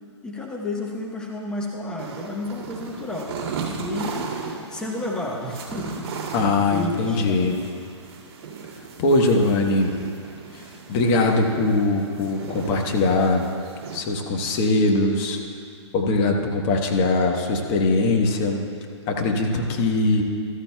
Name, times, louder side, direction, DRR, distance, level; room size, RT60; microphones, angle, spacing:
voice 1, 0.2-3.3 3.6-4.3 4.7-6.1 6.6-7.5, left 2 dB, 5° left, -1 dB, 1.0 m, -31 dB
sound 1, 2.0-14.0, right 5 dB, 35° right, 2.1 m, -36 dB
voice 2, 6.3-7.6 9.0-10.0 10.9-13.5 13.9-15.4 15.9-18.6 19.1-20.2, left 2 dB, 30° left, 2 dB, 1.2 m, -21 dB
14.0 x 13.5 x 2.3 m, 2.3 s
hypercardioid pair, 130°, 16 cm